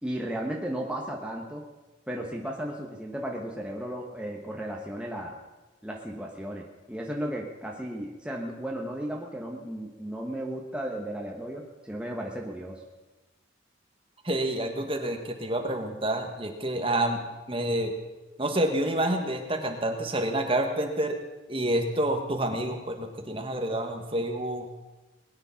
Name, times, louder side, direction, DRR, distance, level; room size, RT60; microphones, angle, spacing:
voice 1, 0.0-1.6 2.1-5.4 5.8-12.8, right 1 dB, 5° right, -1 dB, 1.2 m, -35 dB
voice 2, 14.2-17.2 17.5-18.0 18.4-21.2 21.5-24.7, right 1 dB, 25° right, 4 dB, 1.5 m, -28 dB
20.5 x 10.0 x 5.8 m, 1.1 s
head